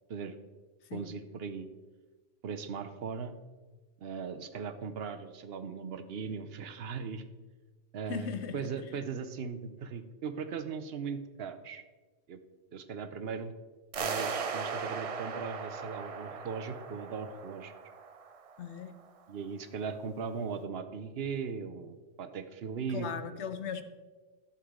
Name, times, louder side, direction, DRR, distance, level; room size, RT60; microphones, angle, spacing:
voice 1, 0.9-1.7 2.4-3.3 4.0-7.2 7.9-11.8 12.3-12.4 12.7-13.5 14.0-17.7 19.3-23.4, right 5 dB, 70° right, 9 dB, 0.9 m, -38 dB
voice 2, 8.1-9.1 18.6-18.9 22.9-23.8, left 7 dB, 90° left, 10 dB, 1.0 m, -38 dB
sound 1, 13.9-18.9, right 5 dB, 45° right, 0.5 m, -38 dB
11.5 x 7.2 x 3.7 m, 1.3 s
omnidirectional pair, 1.1 m